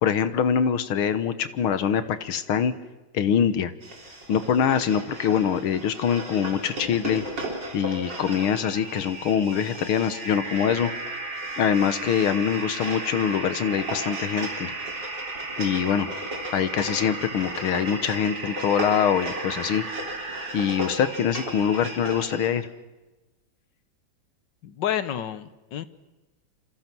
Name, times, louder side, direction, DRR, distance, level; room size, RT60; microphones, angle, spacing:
voice 1, 0.0-2.7 3.1-3.7 4.3-7.2 7.7-10.9 11.6-14.7 15.6-16.1 16.5-19.8 20.5-22.7, left 8 dB, 85° left, 12 dB, 2.1 m, -24 dB
sound 1, 3.8-22.5, right 1 dB, 55° right, 4.6 m, -37 dB
sound 2, 7.9-22.5, right 3 dB, 35° right, 2.3 m, -36 dB
voice 2, 24.6-25.9, left 10 dB, 65° left, 13 dB, 1.6 m, -29 dB
28.0 x 27.0 x 6.2 m, 1.1 s
omnidirectional pair, 2.3 m